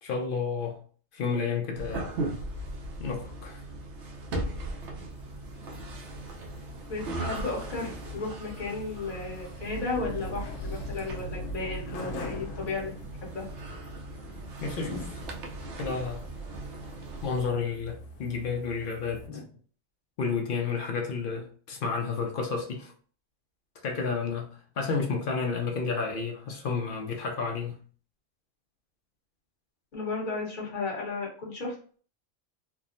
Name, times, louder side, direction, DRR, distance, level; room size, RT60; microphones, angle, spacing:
voice 1, 0.0-0.8 1.1-2.1 3.0-3.6 14.6-15.1 15.8-16.2 17.2-19.4 20.2-22.9 23.8-27.8, left 5 dB, 65° left, 0.5 m, -31 dB
sound 1, 1.7-17.5, right 2 dB, 70° right, 0.9 m, -38 dB
sound 2, 5.1-19.3, equal, 85° left, 1.0 m, -43 dB
voice 2, 6.9-12.9 13.2-13.5 14.8-15.1 19.3-19.5 29.9-31.7, left 3 dB, 40° left, 1.2 m, -34 dB
3.4 x 2.0 x 2.5 m
omnidirectional pair, 1.3 m